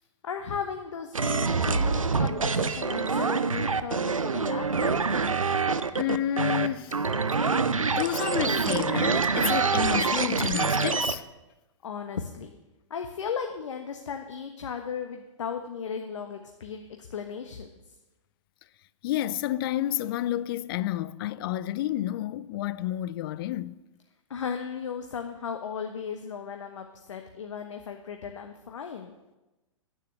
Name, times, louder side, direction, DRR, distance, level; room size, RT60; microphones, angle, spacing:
voice 1, 0.2-5.0 11.8-12.6 12.9-16.8 17.1-17.7 24.3-29.1, left 6 dB, 65° left, 1.2 m, -36 dB
sound 1, 1.1-11.2, right 4 dB, 90° right, 0.8 m, -26 dB
voice 2, 6.0-7.0 7.9-11.2 19.0-23.8, left 13 dB, 45° left, 0.6 m, -30 dB
10.5 x 9.6 x 7.9 m
figure-of-eight pair, 110°, 17 cm